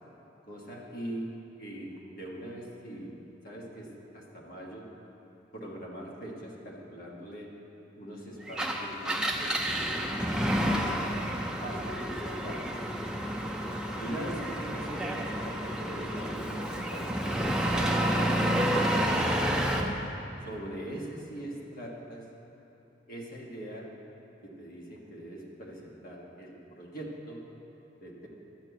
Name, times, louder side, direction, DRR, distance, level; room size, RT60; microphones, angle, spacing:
voice 1, 0.4-1.3 1.6-3.1 3.4-4.9 5.5-7.5 7.9-11.2 11.6-12.7 13.9-19.6 20.4-22.3 23.1-23.9 24.4-27.6 28.0-28.3, right 1 dB, 45° left, -3 dB, 1.5 m, -42 dB
Engine, 8.5-19.9, equal, 5° right, 0.5 m, -29 dB
11.5 x 4.5 x 8.1 m, 2.9 s
head